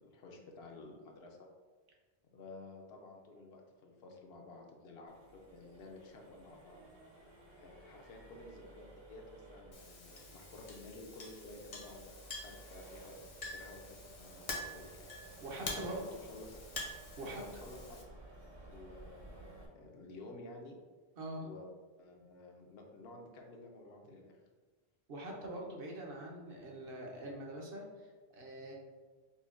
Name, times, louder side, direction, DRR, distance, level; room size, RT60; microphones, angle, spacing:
voice 1, 0.0-1.4 2.3-6.8 7.6-15.1 15.7-16.6 17.2-18.0 18.7-20.8 21.4-21.7 22.0-24.4, left 2 dB, 75° left, 1 dB, 0.8 m, -52 dB
Accelerating revving vroom, 5.1-19.7, right 2 dB, 35° right, 0.5 m, -55 dB
Chink clink, 9.7-18.0, left 2 dB, 40° left, 0.6 m, -47 dB
voice 2, 15.4-16.0 17.2-17.4 21.2-21.4 25.1-28.7, right 1 dB, 65° right, -1 dB, 0.9 m, -44 dB
5.4 x 2.2 x 2.4 m, 1.4 s
omnidirectional pair, 1.1 m